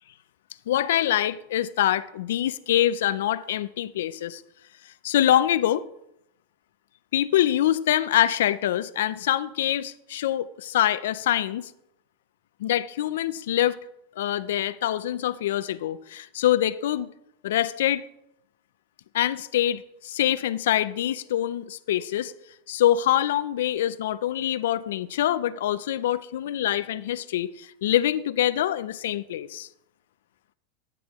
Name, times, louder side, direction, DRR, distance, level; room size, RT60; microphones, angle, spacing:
voice 1, 0.7-4.4 5.0-5.8 7.1-11.7 12.6-13.8 14.2-17.1 17.4-18.1 19.1-22.3 22.7-29.7, left 12 dB, 80° left, 0.5 m, -25 dB
9.8 x 9.5 x 3.0 m
supercardioid pair, 145°, 0 cm